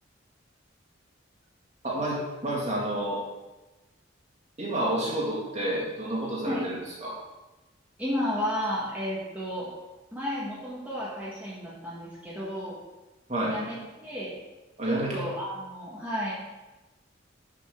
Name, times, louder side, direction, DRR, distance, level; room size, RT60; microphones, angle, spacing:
voice 1, 1.8-3.2 4.6-7.2 13.3-13.6 14.8-15.2, right 1 dB, 35° right, -4 dB, 2.4 m, -29 dB
voice 2, 8.0-9.7 10.1-12.8 13.5-14.3 14.9-16.3, equal, 10° right, -8 dB, 1.9 m, -32 dB
11.5 x 5.8 x 3.9 m, 1.1 s
head